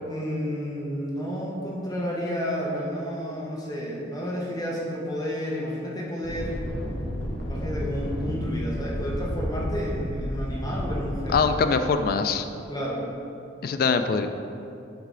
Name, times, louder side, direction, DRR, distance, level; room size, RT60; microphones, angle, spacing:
voice 1, 0.1-6.6 7.4-11.5 12.7-13.0, equal, 20° left, -4 dB, 0.8 m, -31 dB
sound 1, 6.2-11.6, equal, 70° left, 0.9 m, -31 dB
voice 2, 11.3-12.5 13.6-14.3, left 5 dB, 50° left, 9 dB, 0.3 m, -23 dB
8.0 x 3.2 x 3.7 m, 2.6 s
head